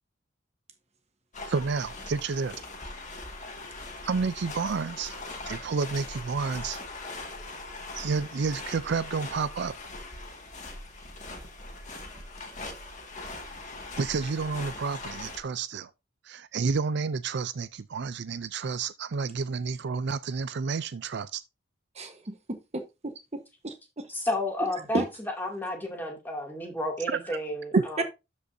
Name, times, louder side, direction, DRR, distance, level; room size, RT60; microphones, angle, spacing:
sound 1, 1.3-15.4, left 2 dB, 40° left, 1.9 m, -41 dB
voice 1, 1.5-2.5 4.0-5.2 5.5-6.8 7.9-9.7 14.0-15.9 16.2-21.4, right 5 dB, 60° right, 0.4 m, -30 dB
voice 2, 21.9-24.1 24.9-25.0 28.0-28.1, right 2 dB, 35° right, 1.1 m, -33 dB
voice 3, 24.1-25.0 25.4-28.0, left 1 dB, 10° left, 2.4 m, -31 dB
12.5 x 5.3 x 2.7 m
head